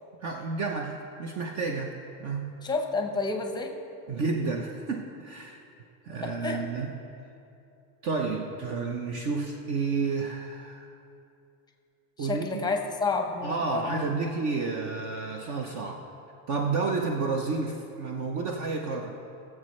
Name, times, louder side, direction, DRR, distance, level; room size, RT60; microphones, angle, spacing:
voice 1, 0.2-2.5 4.1-5.6 6.0-7.0 8.0-10.9 12.2-12.6 13.4-16.1 16.5-19.2, right 4 dB, 40° right, 2 dB, 0.8 m, -31 dB
voice 2, 2.6-3.7 6.2-6.6 12.2-14.0, left 3 dB, 10° left, 3 dB, 0.8 m, -30 dB
20.5 x 7.5 x 3.2 m, 2.7 s
supercardioid pair, 150°, 45 cm